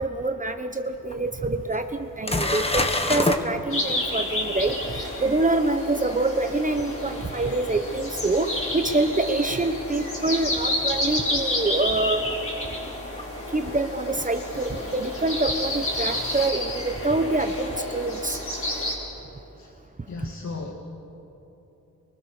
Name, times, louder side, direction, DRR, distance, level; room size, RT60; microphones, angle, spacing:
voice 1, 0.0-12.2 13.5-18.4 20.2-20.3, right 2 dB, 25° right, 6 dB, 1.1 m, -26 dB
sound 1, 1.1-1.2 1.7-1.8 2.3-3.4 8.5-8.6 11.4-11.5 13.2-13.3 14.7-16.5, left 2 dB, 20° left, 1.6 m, -28 dB
sound 2, 3.7-18.9, left 1 dB, 45° left, 5.9 m, -30 dB
voice 2, 20.1-20.7, left 3 dB, 60° left, 1 dB, 2.0 m, -35 dB
30.0 x 23.5 x 6.7 m, 2.9 s
wide cardioid pair, 130°, 32 cm